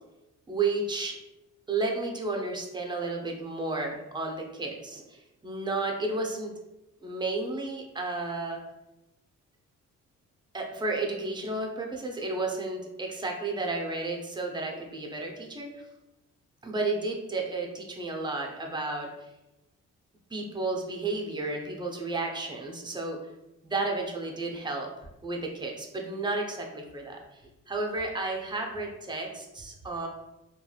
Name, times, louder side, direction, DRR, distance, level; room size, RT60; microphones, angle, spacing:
voice 1, 0.5-1.2 1.7-6.5 7.0-8.6 10.5-15.8 16.6-19.1 20.3-23.2 23.6-24.9 25.2-27.2 27.7-30.1, right 3 dB, 15° right, 1 dB, 0.5 m, -32 dB
2.9 x 2.3 x 2.3 m, 0.95 s
cardioid pair, 90°, 30 cm